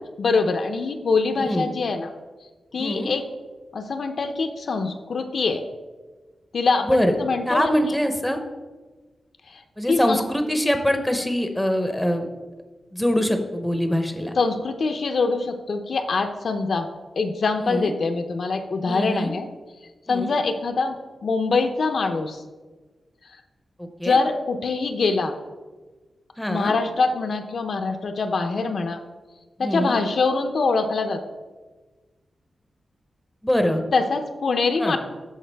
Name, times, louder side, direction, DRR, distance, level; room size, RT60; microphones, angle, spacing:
voice 1, 0.2-2.1 2.7-3.2 3.7-5.6 6.5-8.0 9.5-9.6 9.9-10.2 14.4-16.9 17.2-19.4 20.1-21.0 21.2-22.4 24.0-25.3 26.5-29.0 29.6-31.2 33.9-35.0, left 4 dB, 55° left, 6 dB, 0.5 m, -24 dB
voice 2, 1.3-1.7 2.8-3.1 6.8-7.1 7.5-8.4 9.8-12.3 12.9-14.3 17.6-17.9 18.8-19.3 20.1-20.3 23.8-24.2 26.4-26.7 29.6-30.0 33.4-33.8 34.8-35.0, equal, 5° left, 5 dB, 0.7 m, -23 dB
13.0 x 4.6 x 3.4 m, 1.3 s
wide cardioid pair, 170°, 0 cm